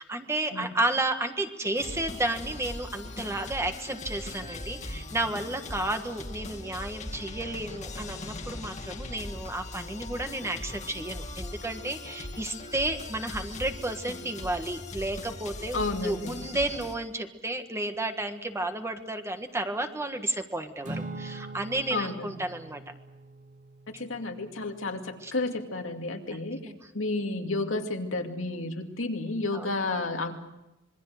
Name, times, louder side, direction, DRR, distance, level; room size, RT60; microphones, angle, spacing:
voice 1, 0.0-22.8 25.2-25.3 26.6-26.8 29.5-29.7, right 1 dB, 15° right, 6 dB, 1.5 m, -32 dB
sound 1, 1.7-16.9, left 2 dB, 40° left, 2.1 m, -40 dB
voice 2, 15.7-16.4 21.9-22.3 24.0-30.3, left 2 dB, 75° left, 3 dB, 2.4 m, -31 dB
Acoustic guitar / Strum, 20.8-25.3, right 2 dB, 40° right, 3.2 m, -43 dB
26.5 x 22.5 x 6.5 m, 0.96 s
head